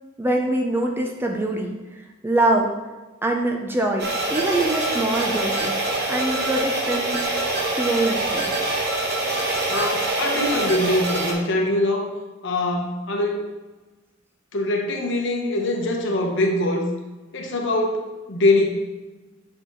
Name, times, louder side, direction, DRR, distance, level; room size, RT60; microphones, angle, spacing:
voice 1, 0.2-1.7 2.2-2.7 3.2-5.8 6.1-7.2 7.8-8.5, right 1 dB, 10° right, 1 dB, 0.4 m, -23 dB
sound 1, 4.0-11.3, right 2 dB, 55° right, 1.0 m, -25 dB
voice 2, 9.7-12.1 12.4-13.5 14.5-16.9 17.3-18.7, left 2 dB, 65° left, 1 dB, 1.0 m, -23 dB
7.7 x 4.4 x 3.0 m, 1.2 s
head